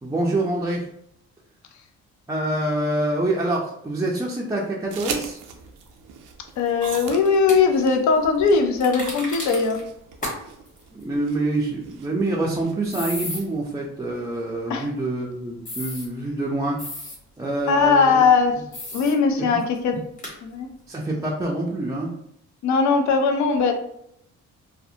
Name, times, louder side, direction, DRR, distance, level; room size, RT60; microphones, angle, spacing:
voice 1, 0.0-0.9 2.3-5.4 10.9-16.8 17.4-18.2 19.4-19.5 20.9-22.1, right 2 dB, 10° right, -3 dB, 0.4 m, -26 dB
sound 1, 4.9-13.7, right 6 dB, 90° right, 0.5 m, -39 dB
voice 2, 6.6-9.8 14.7-14.8 17.7-18.6 18.9-20.0 20.4-20.7 22.6-23.7, left 5 dB, 70° left, 5 dB, 0.5 m, -19 dB
sound 2, 7.1-7.6 8.8-9.8 10.2-10.4 10.7-10.8 12.9-13.4 15.7-16.1 16.8-17.2 18.7-19.1 19.6-19.7 20.2-20.3, left 1 dB, 25° left, 1.1 m, -33 dB
2.5 x 2.1 x 2.6 m, 0.74 s
cardioid pair, 90°, 30 cm